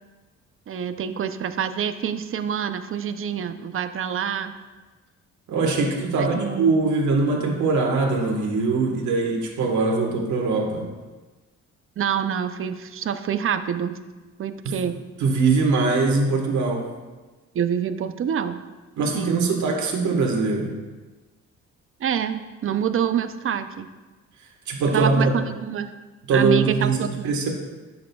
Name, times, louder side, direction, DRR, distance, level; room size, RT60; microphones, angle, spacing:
voice 1, 0.7-4.5 6.1-6.7 12.0-14.0 14.4-15.0 17.5-18.6 19.1-19.4 22.0-23.9 24.9-25.9 26.3-27.3, right 8 dB, 45° right, 10 dB, 0.6 m, -26 dB
voice 2, 5.5-10.9 14.6-14.8 15.2-16.9 19.0-20.7 24.7-25.3 26.3-27.5, right 3 dB, 70° right, 0 dB, 1.5 m, -22 dB
10.5 x 7.4 x 2.3 m, 1.2 s
cardioid pair, 90°, 30 cm